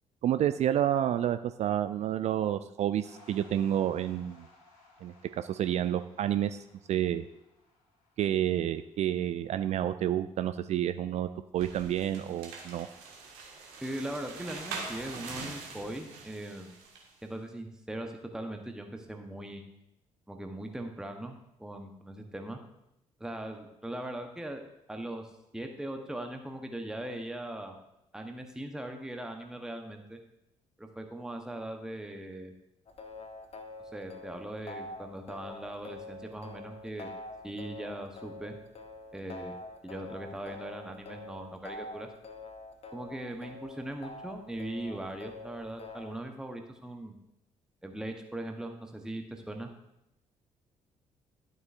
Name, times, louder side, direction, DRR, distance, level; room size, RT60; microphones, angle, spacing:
voice 1, 0.2-4.5 5.0-7.2 8.2-12.9, right 11 dB, 45° right, 11 dB, 0.4 m, -29 dB
sound 1, 3.0-9.5, left 3 dB, 70° left, 2.9 m, -60 dB
sound 2, 11.5-17.1, right 4 dB, 65° right, 1.7 m, -43 dB
voice 2, 13.8-16.7 17.2-19.6 20.3-22.6 23.2-24.6 24.9-27.8 28.1-30.2 30.8-32.5 33.9-37.1 37.4-38.6 39.1-39.6 39.8-42.1 42.9-47.1 47.8-49.7, right 1 dB, 5° right, 4 dB, 0.9 m, -40 dB
sound 3, 32.9-46.2, left 2 dB, 40° left, 1.0 m, -46 dB
12.0 x 7.8 x 2.5 m, 0.85 s
figure-of-eight pair, 45°, 17 cm